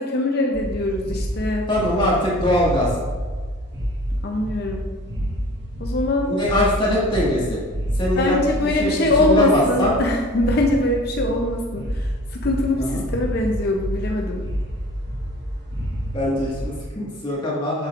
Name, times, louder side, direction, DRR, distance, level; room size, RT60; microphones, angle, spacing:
voice 1, 0.0-1.7 4.2-4.8 5.8-6.3 8.2-14.5, left 2 dB, 55° left, 1 dB, 0.7 m, -22 dB
sound 1, 0.5-16.8, equal, 55° right, 1.3 m, -29 dB
voice 2, 1.7-2.9 6.2-7.6 8.0-10.0 12.8-13.0 16.1-17.9, left 1 dB, 25° left, -6 dB, 1.8 m, -22 dB
7.9 x 7.4 x 2.6 m, 1.5 s
head